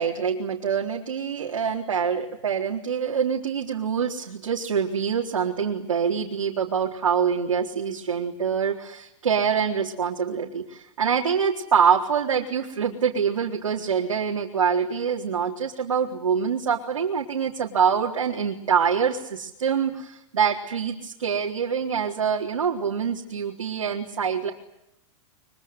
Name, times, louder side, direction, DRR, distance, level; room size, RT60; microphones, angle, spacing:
voice 1, 0.0-24.5, right 7 dB, 90° right, -1 dB, 4.0 m, -25 dB
24.5 x 24.0 x 9.8 m, 0.76 s
hypercardioid pair, 115°, 16 cm